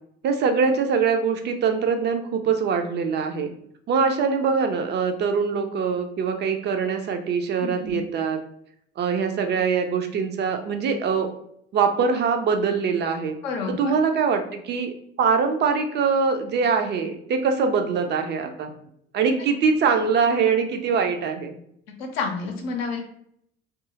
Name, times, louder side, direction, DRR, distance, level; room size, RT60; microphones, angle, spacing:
voice 1, 0.2-3.5 3.9-8.4 9.0-11.3 11.7-13.4 13.7-18.7 19.1-21.6, right 5 dB, 35° right, 6 dB, 0.4 m, -23 dB
voice 2, 7.6-8.0 13.4-13.9 22.0-23.0, left 4 dB, 70° left, 2 dB, 0.6 m, -29 dB
2.6 x 2.4 x 2.7 m, 0.71 s
figure-of-eight pair, 55°, 31 cm